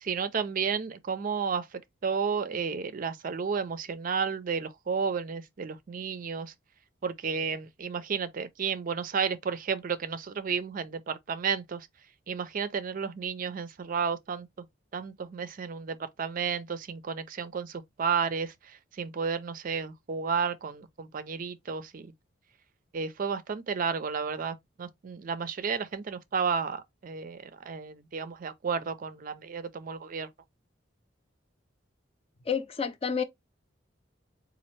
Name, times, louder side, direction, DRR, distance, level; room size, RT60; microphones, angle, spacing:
voice 1, 0.0-6.5 7.0-11.9 12.3-14.7 14.9-22.1 22.9-30.3, right 6 dB, 45° right, 0.4 m, -32 dB
voice 2, 32.5-33.2, left 6 dB, 30° left, 0.5 m, -29 dB
4.1 x 2.4 x 3.1 m
head